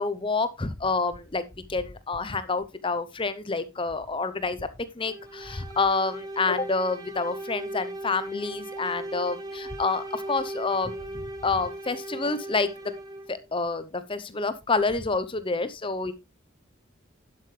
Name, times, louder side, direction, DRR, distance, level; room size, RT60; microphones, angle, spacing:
voice 1, 0.0-1.4 1.7-4.7 5.0-12.7 13.3-16.1, left 3 dB, 25° left, 13 dB, 0.8 m, -28 dB
sound 1, 5.0-13.4, right 1 dB, 20° right, 1.8 m, -38 dB
11.0 x 7.7 x 3.3 m, 0.25 s
head